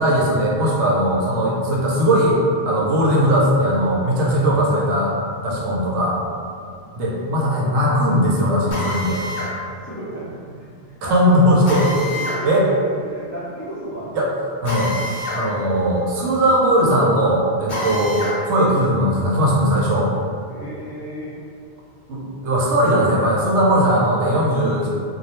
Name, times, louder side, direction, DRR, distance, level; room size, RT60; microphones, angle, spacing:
voice 1, 0.0-5.1 5.4-6.2 6.9-9.2 11.0-11.9 12.4-12.6 14.1-14.3 14.6-14.9 15.3-18.2 18.5-20.1 22.1-24.9, equal, 80° right, -4 dB, 0.9 m, -18 dB
Drill, 8.7-9.5 11.7-12.4 14.6-15.4 15.8-15.9 17.7-18.4, left 1 dB, 55° left, 0.9 m, -27 dB
voice 2, 9.6-12.7 13.0-14.1 17.8-18.0 20.5-21.3, right 1 dB, 30° left, -11 dB, 0.3 m, -34 dB
2.3 x 2.0 x 2.9 m, 2.3 s
omnidirectional pair, 1.2 m